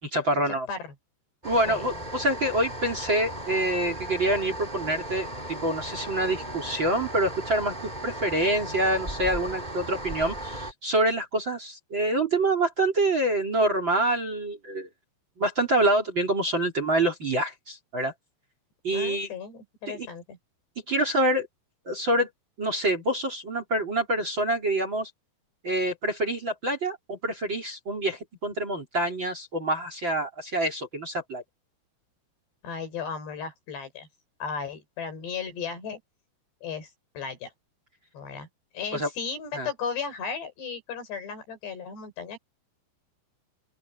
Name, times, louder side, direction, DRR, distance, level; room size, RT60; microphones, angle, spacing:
voice 1, 0.0-0.7 1.4-7.7 8.0-14.9 15.4-18.1 18.8-19.3 19.9-20.1 20.9-21.5 21.8-22.3 22.6-25.1 25.6-31.4 38.9-39.1 39.5-39.7, right 1 dB, 30° right, 3.4 m, -26 dB
sound 1, 1.4-10.7, right 1 dB, 10° right, 2.8 m, -36 dB
voice 2, 18.9-20.4 32.6-34.1 34.4-36.0 36.6-37.5 38.1-38.5 38.7-42.4, left 6 dB, 70° left, 7.6 m, -35 dB
open air
omnidirectional pair, 5.1 m